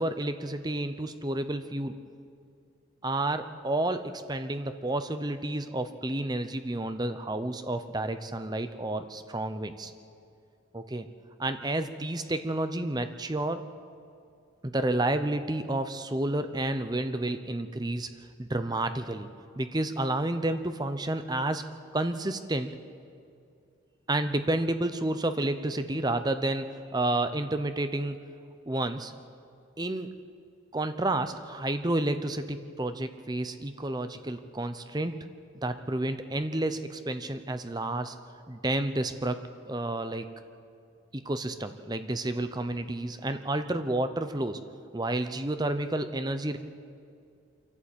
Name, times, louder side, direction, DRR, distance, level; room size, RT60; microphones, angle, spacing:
voice 1, 0.0-1.9 3.0-9.9 10.7-11.1 11.4-13.7 14.6-18.1 18.4-19.3 19.6-21.6 21.9-22.7 24.1-28.2 28.7-29.1 29.8-30.1 30.7-35.2 35.6-38.1 38.5-39.4 39.7-40.3 41.1-44.6 44.9-46.6, right 1 dB, 20° right, 9 dB, 0.8 m, -30 dB
26.5 x 12.0 x 8.6 m, 2.4 s
head